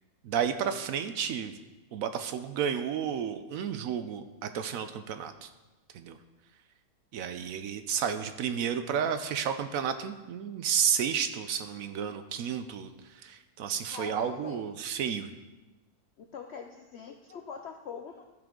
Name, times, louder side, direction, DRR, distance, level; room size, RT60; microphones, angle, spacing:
voice 1, 0.2-1.5 1.9-5.5 5.9-6.2 7.1-15.3, right 8 dB, 70° right, 9 dB, 0.9 m, -32 dB
voice 2, 13.9-14.6 16.2-18.3, left 6 dB, 70° left, 5 dB, 0.6 m, -43 dB
14.0 x 5.1 x 3.7 m, 1.1 s
omnidirectional pair, 1.7 m